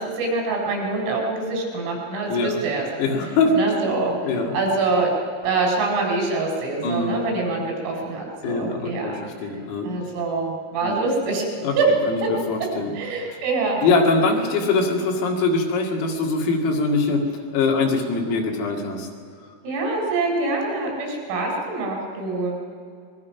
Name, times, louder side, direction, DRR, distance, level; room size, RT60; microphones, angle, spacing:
voice 1, 0.0-2.9 3.5-4.1 4.5-5.1 5.4-9.2 9.8-11.5 11.8-11.9 13.0-13.9 19.6-22.5, right 3 dB, 80° right, 0 dB, 6.8 m, -25 dB
voice 2, 2.3-2.6 3.0-3.5 4.2-4.5 6.8-7.1 8.4-9.9 10.8-10.9 11.6-11.7 12.1-12.9 13.3-13.4 13.8-17.2 17.5-19.1, left 3 dB, 85° left, 0 dB, 5.1 m, -22 dB
26.0 x 21.0 x 5.9 m, 2.2 s
omnidirectional pair, 5.9 m